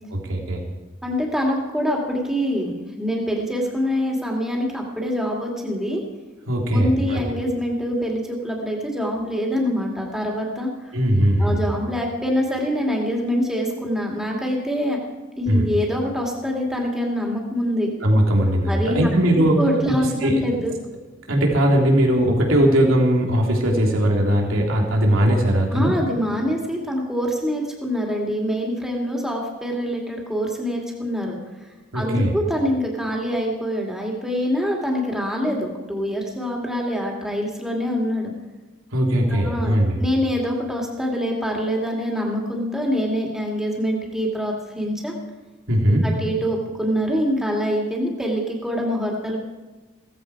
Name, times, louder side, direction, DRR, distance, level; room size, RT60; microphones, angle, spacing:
voice 1, 0.1-0.6 6.5-7.3 10.9-11.6 15.5-15.7 18.0-19.6 20.2-20.4 21.3-25.9 31.9-32.3 38.9-40.0 45.7-46.0, right 1 dB, 90° right, 0 dB, 3.1 m, -19 dB
voice 2, 1.0-6.0 6.7-10.7 11.4-15.0 15.4-17.9 18.7-19.1 19.6-20.7 25.7-31.4 31.9-38.3 39.3-45.1 46.0-49.4, equal, 5° right, -1 dB, 2.4 m, -25 dB
16.5 x 14.5 x 4.8 m, 1.3 s
head